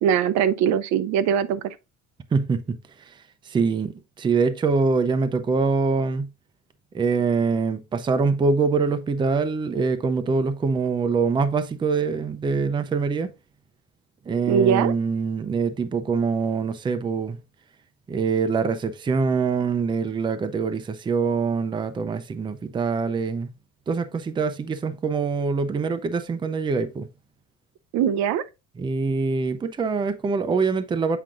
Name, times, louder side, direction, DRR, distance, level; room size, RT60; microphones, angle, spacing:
voice 1, 0.0-1.8 14.5-14.9 27.9-28.4, right 8 dB, 70° right, 0.6 m, -21 dB
voice 2, 2.3-3.9 4.2-6.3 6.9-13.3 14.3-17.4 18.1-23.5 23.9-27.1 28.8-31.2, right 4 dB, 15° right, 0.5 m, -24 dB
7.6 x 4.9 x 2.5 m
cardioid pair, 140°, 29 cm